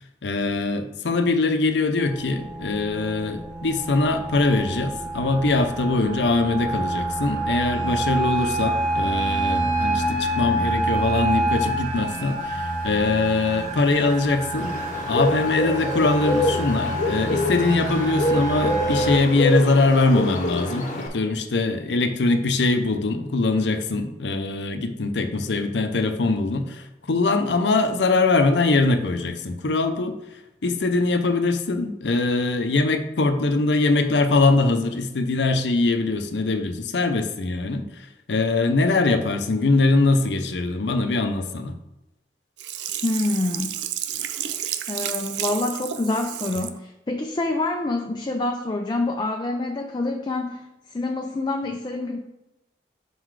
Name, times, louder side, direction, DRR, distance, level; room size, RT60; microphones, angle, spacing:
voice 1, 0.2-14.7 15.1-30.2 30.6-41.7, left 3 dB, 80° left, 8 dB, 0.6 m, -22 dB
sound 1, 2.0-19.2, right 1 dB, 45° right, 1.0 m, -27 dB
Bird, 14.6-21.1, left 1 dB, 45° left, 0.9 m, -26 dB
Sink (filling or washing), 42.6-46.8 47.2-47.3, right 10 dB, 80° right, 0.4 m, -31 dB
voice 2, 43.0-43.7 44.9-52.2, left 2 dB, 25° left, 3 dB, 0.4 m, -26 dB
5.4 x 3.9 x 4.7 m, 0.95 s
head